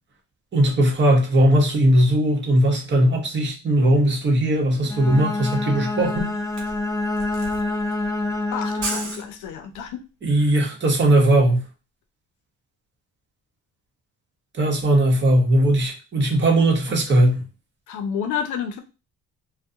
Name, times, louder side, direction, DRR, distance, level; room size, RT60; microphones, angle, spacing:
voice 1, 0.5-6.3 10.2-11.7 14.6-17.5, right 1 dB, 40° right, 0 dB, 0.9 m, -19 dB
Bowed string instrument, 4.8-9.3, left 2 dB, 10° left, 0.5 m, -27 dB
Camera, 5.0-5.1 5.4-9.9, right 3 dB, 65° right, 0.8 m, -35 dB
voice 2, 8.5-10.0 10.4-10.5 17.9-18.8, left 7 dB, 85° left, 7 dB, 0.5 m, -30 dB
2.3 x 2.1 x 2.7 m, 0.31 s
cardioid pair, 90°, 30 cm